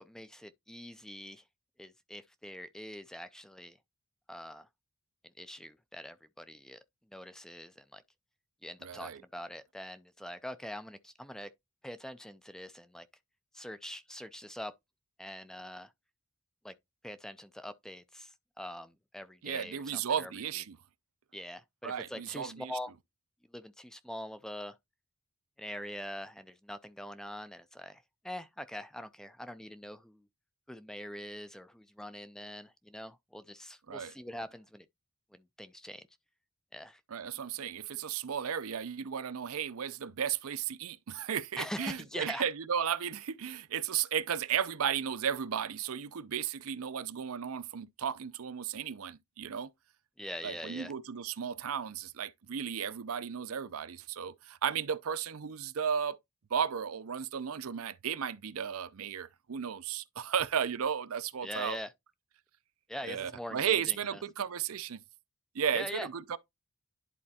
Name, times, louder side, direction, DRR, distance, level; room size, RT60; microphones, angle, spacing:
voice 1, 0.0-1.4 1.8-3.8 4.3-4.7 5.4-6.8 7.1-8.0 8.6-11.5 11.8-13.1 13.5-14.7 15.2-15.9 16.6-16.7 17.0-20.3 21.3-22.9 23.5-24.8 25.6-30.2 30.7-34.9 35.3-36.0 36.7-37.0 41.6-42.4 50.2-50.9 61.4-61.9 62.9-64.2 65.7-66.1, equal, 5° left, 0.3 m, -43 dB
voice 2, 8.8-9.2 19.4-20.8 21.8-22.7 33.9-34.1 37.1-49.7 50.4-56.2 56.5-61.8 63.0-65.0 65.5-66.4, right 8 dB, 75° right, 0.5 m, -34 dB
11.0 x 4.2 x 2.8 m
head